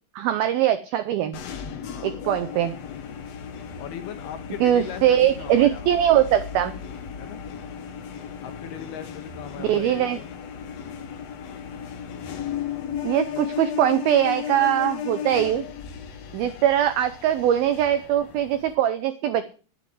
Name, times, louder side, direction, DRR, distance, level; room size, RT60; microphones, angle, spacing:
voice 1, 0.2-1.4 2.0-2.8 4.6-6.7 9.6-10.2 13.0-15.6 16.3-19.5, right 11 dB, 85° right, 11 dB, 2.1 m, -21 dB
sound 1, 1.3-18.8, left 8 dB, 90° left, 1.4 m, -35 dB
voice 2, 1.8-2.1 3.8-6.0 7.2-7.4 8.4-10.3 13.3-13.5, left 9 dB, 70° left, 8 dB, 2.7 m, -38 dB
11.0 x 8.3 x 7.7 m, 0.38 s
omnidirectional pair, 5.3 m